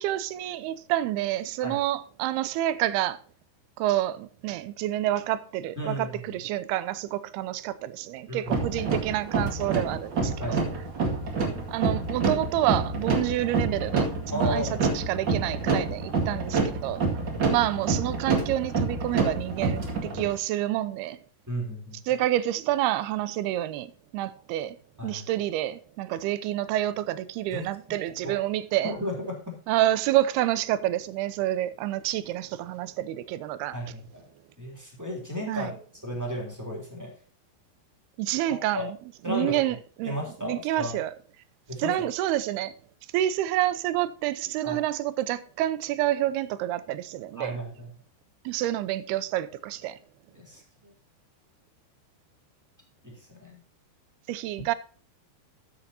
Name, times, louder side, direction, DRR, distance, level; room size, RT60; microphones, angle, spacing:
voice 1, 0.0-3.2 3.8-10.6 11.7-14.7 14.9-17.0 17.5-21.2 22.1-24.8 25.0-28.9 29.7-33.8 35.5-35.7 38.2-39.0 39.3-40.2 40.4-41.1 41.8-42.7 43.1-47.6 48.5-50.0 54.3-54.7, right 14 dB, 80° right, 2.6 m, -28 dB
voice 2, 5.8-6.1 8.3-8.6 10.4-10.7 14.3-14.9 17.2-17.4 21.5-22.0 25.0-25.2 27.5-27.7 28.2-28.4 28.8-29.6 33.7-34.3 34.6-37.1 38.5-38.8 39.2-39.6 40.0-41.0 41.7-42.1 44.6-44.8 47.3-47.9 50.3-50.9 53.0-53.6, equal, 5° right, 2.5 m, -34 dB
sound 1, 8.5-20.3, right 3 dB, 40° right, 1.8 m, -28 dB
13.0 x 7.9 x 2.8 m
omnidirectional pair, 4.8 m